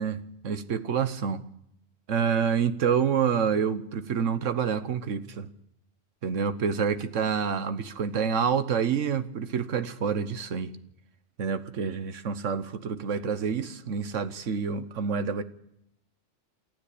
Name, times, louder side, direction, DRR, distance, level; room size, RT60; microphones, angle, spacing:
voice 1, 0.0-1.4 2.1-5.5 6.2-10.7 11.4-15.4, right 6 dB, 90° right, 1.4 m, -28 dB
28.5 x 12.5 x 8.6 m
omnidirectional pair, 1.2 m